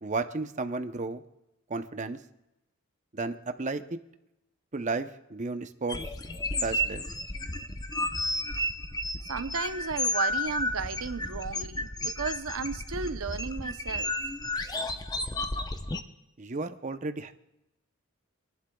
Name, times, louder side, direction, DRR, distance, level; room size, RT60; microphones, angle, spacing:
voice 1, 0.0-1.2 1.7-2.2 3.1-4.0 4.7-6.0 6.6-7.0 16.4-17.3, right 3 dB, 35° right, 0.7 m, -33 dB
sound 1, 5.9-16.0, left 1 dB, 20° left, 0.7 m, -32 dB
voice 2, 9.2-14.1, right 5 dB, 70° right, 0.7 m, -34 dB
27.0 x 11.5 x 2.3 m
head